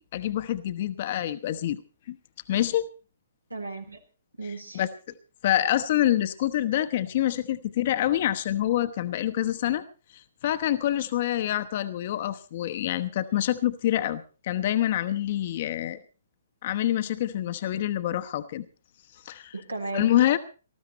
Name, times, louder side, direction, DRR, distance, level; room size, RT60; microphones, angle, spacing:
voice 1, 0.0-1.8 2.1-2.2 2.5-2.9 4.7-4.9 5.4-9.8 10.4-16.0 16.6-18.7 19.2-19.5 19.9-20.4, left 12 dB, 40° left, 10 dB, 1.0 m, -26 dB
voice 2, 3.5-4.0 4.4-4.8 19.5-20.4, right 3 dB, 80° right, 4 dB, 3.3 m, -35 dB
19.0 x 14.0 x 4.3 m, 0.35 s
figure-of-eight pair, 125°, 0 cm